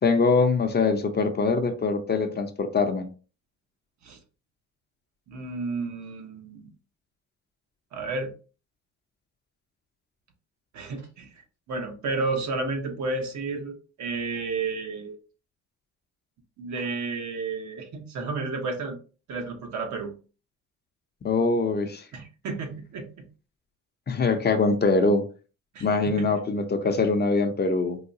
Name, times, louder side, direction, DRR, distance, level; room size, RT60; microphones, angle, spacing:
voice 1, 0.0-3.1 21.2-22.1 24.1-25.3 25.8-28.0, left 4 dB, 35° left, 6 dB, 0.6 m, -23 dB
voice 2, 5.3-6.7 7.9-8.3 10.7-11.3 11.7-15.2 16.6-19.0 19.3-20.1 22.1-23.3 25.7-25.9 26.2-26.3, right 3 dB, 70° right, 3 dB, 1.0 m, -31 dB
4.7 x 2.2 x 2.7 m, 0.36 s
cardioid pair, 90°, 30 cm